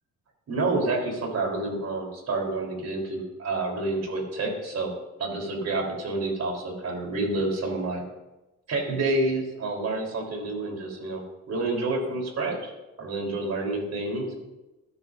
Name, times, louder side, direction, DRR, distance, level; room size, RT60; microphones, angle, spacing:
voice 1, 0.5-4.9 5.2-8.0 8.7-11.2 11.5-12.7 13.0-14.4, right 2 dB, 60° right, 0 dB, 4.3 m, -28 dB
20.5 x 11.0 x 2.8 m, 1.1 s
cardioid pair, 90°, 30 cm